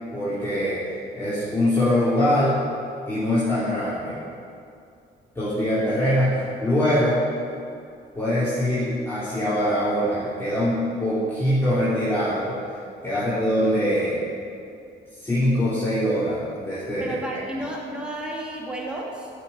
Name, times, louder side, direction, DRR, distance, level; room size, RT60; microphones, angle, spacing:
voice 1, 0.1-0.8 1.1-2.6 3.1-4.2 5.3-7.2 8.1-12.6 13.0-14.2 15.1-17.1 17.3-17.4, equal, 10° left, -12 dB, 3.2 m, -23 dB
voice 2, 17.0-19.3, right 1 dB, 5° right, -3 dB, 2.4 m, -32 dB
9.9 x 6.3 x 8.2 m, 2.4 s
cardioid pair, 90°, 20 cm